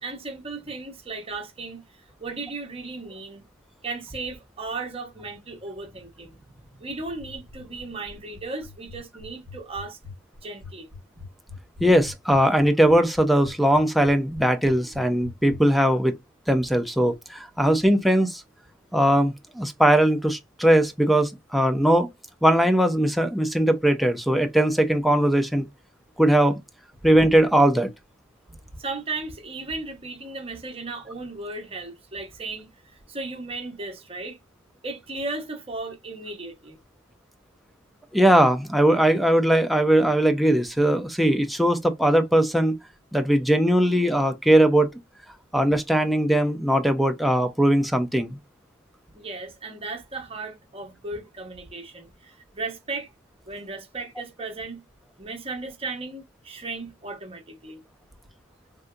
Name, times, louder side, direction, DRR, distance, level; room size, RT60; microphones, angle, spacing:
voice 1, 0.0-3.5 3.8-6.4 6.8-10.0 10.4-10.9 28.8-34.4 34.8-36.8 49.1-53.1 53.5-54.8 55.2-57.8, right 3 dB, 30° right, 1.0 m, -36 dB
sound 1, 7.2-15.6, left 4 dB, 20° left, 1.2 m, -42 dB
voice 2, 11.8-16.1 16.5-18.4 18.9-22.1 22.4-25.7 26.2-26.6 27.0-27.9 38.1-42.8 43.1-44.9 45.5-48.4, right 1 dB, ahead, 0.5 m, -20 dB
3.7 x 2.7 x 2.2 m
head